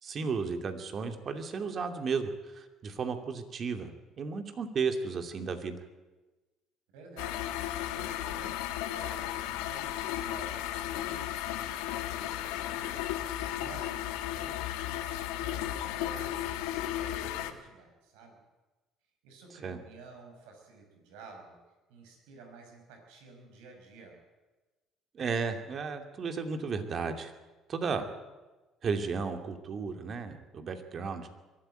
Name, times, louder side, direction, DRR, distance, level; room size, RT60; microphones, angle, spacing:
voice 1, 0.0-3.9 4.2-5.8 19.6-19.8 25.1-27.3 27.7-28.1 28.8-31.3, right 5 dB, 45° right, 7 dB, 2.7 m, -34 dB
voice 2, 6.9-18.4 19.2-21.6 21.9-24.2, right 4 dB, 80° right, 3 dB, 6.1 m, -52 dB
sound 1, 7.2-17.5, left 12 dB, 80° left, 1.5 m, -34 dB
22.5 x 13.0 x 9.2 m, 1.2 s
hypercardioid pair, 70°, 0 cm